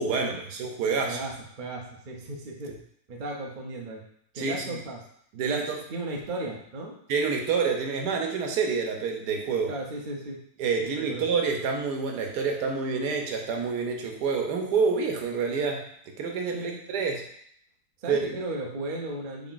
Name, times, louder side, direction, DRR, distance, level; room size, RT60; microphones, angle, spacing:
voice 1, 0.0-1.2 4.4-4.8 5.3-5.8 7.1-9.7 10.6-15.9 16.2-17.2 18.1-18.2, right 5 dB, 80° right, 2 dB, 1.2 m, -27 dB
voice 2, 1.0-2.7 3.1-4.0 4.3-5.0 5.4-6.9 9.7-10.4 10.8-11.3 16.5-16.8 18.0-19.5, right 2 dB, 65° right, 0 dB, 0.4 m, -35 dB
3.6 x 2.4 x 3.8 m, 0.67 s
omnidirectional pair, 1.7 m